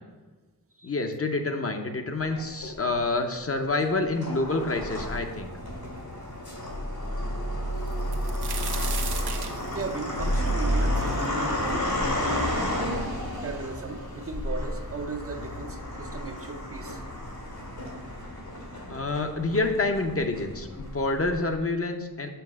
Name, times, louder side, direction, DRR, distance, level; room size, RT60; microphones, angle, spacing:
voice 1, 0.8-5.5 18.9-22.3, left 3 dB, 40° left, 5 dB, 0.6 m, -28 dB
sound 1, 2.3-3.0 3.8-21.5, left 1 dB, 80° left, 2.2 m, -31 dB
sound 2, 7.9-11.7 12.2-12.3 13.1-13.2 13.4-14.1 15.0-15.1 15.5-15.7, right 5 dB, 85° right, 0.8 m, -37 dB
voice 2, 9.7-12.8 13.4-17.0, right 4 dB, 40° right, 6 dB, 0.5 m, -37 dB
7.0 x 3.3 x 6.2 m, 1.3 s
wide cardioid pair, 95°, 37 cm